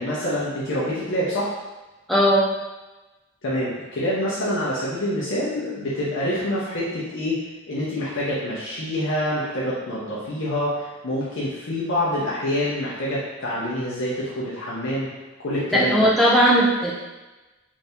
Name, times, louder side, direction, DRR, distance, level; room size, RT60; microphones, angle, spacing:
voice 1, 0.0-1.5 3.4-7.4 7.7-15.1 15.4-16.1, equal, 60° left, -8 dB, 0.6 m, -26 dB
voice 2, 2.1-2.5 15.7-16.9, equal, ahead, -5 dB, 0.4 m, -17 dB
2.7 x 2.6 x 3.4 m, 1.1 s
head